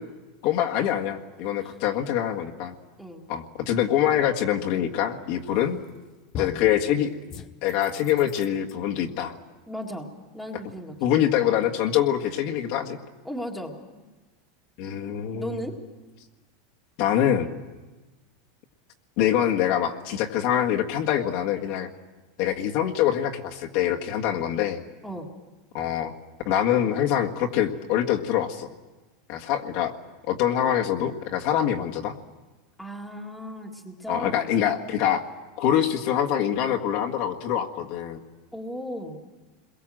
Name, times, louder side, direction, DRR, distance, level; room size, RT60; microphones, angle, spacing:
voice 1, 0.4-2.7 3.3-5.8 6.3-7.1 7.6-9.3 11.0-13.0 14.8-15.6 17.0-17.5 19.2-21.9 22.4-24.8 25.7-26.1 26.4-28.7 29.3-29.9 30.3-32.1 34.1-35.2 35.6-38.2, left 10 dB, 45° left, 1 dB, 1.7 m, -24 dB
sound 1, 5.6-6.0 6.3-6.7 7.3-8.7, left 7 dB, 25° left, 0.9 m, -39 dB
voice 2, 9.7-10.1 10.3-11.2 13.2-13.8 15.2-15.8 25.0-25.3 32.8-34.5 38.5-39.2, equal, ahead, 0 dB, 1.9 m, -36 dB
29.0 x 22.0 x 7.7 m, 1.2 s
supercardioid pair, 175°, 2 cm